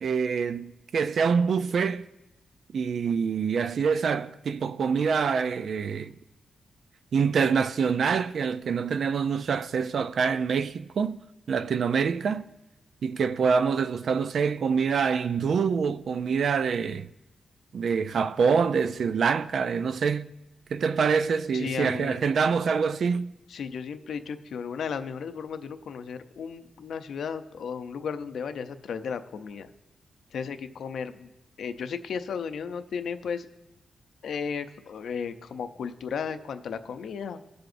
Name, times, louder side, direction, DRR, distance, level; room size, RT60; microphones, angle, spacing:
voice 1, 0.0-2.1 2.7-6.1 7.1-11.2 11.5-12.5 13.0-17.1 17.7-20.3 20.7-23.3, right 6 dB, 60° right, 0.4 m, -25 dB
voice 2, 21.5-22.2 23.5-29.7 30.3-31.3 31.6-33.5 34.2-37.4, left 6 dB, 70° left, 0.6 m, -34 dB
20.5 x 7.7 x 2.6 m
wide cardioid pair, 145°, 0 cm